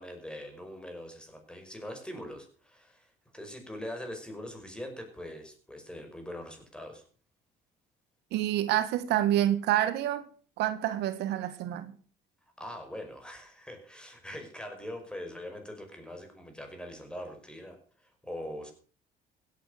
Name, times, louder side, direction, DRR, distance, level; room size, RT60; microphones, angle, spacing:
voice 1, 0.0-7.0 12.6-18.7, left 1 dB, 5° left, 5.4 m, -42 dB
voice 2, 8.3-10.2 10.6-11.9, right 12 dB, 85° right, 1.7 m, -27 dB
16.5 x 9.5 x 6.5 m
cardioid pair, 110°, 17 cm